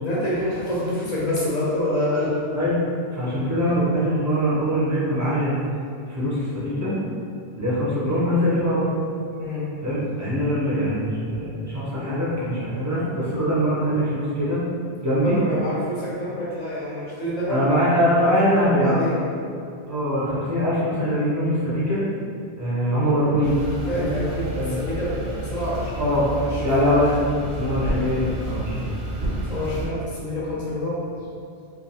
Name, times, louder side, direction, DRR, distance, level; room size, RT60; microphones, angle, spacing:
voice 1, 0.0-2.4 9.4-9.7 15.2-17.6 18.2-18.4 18.7-19.2 23.8-26.8 29.5-31.1, left 1 dB, 50° left, -6 dB, 0.6 m, -27 dB
voice 2, 3.1-5.6 6.1-6.9 7.6-9.0 9.8-14.6 15.0-15.4 17.5-19.1 19.9-22.0 22.6-23.6 23.9-24.1 24.5-24.8 26.0-26.3 26.6-27.1 27.5-28.9, equal, 25° right, -9 dB, 0.4 m, -22 dB
sound 1, 23.4-29.9, right 2 dB, 75° right, 0.8 m, -30 dB
2.3 x 2.3 x 2.7 m, 2.4 s
omnidirectional pair, 1.1 m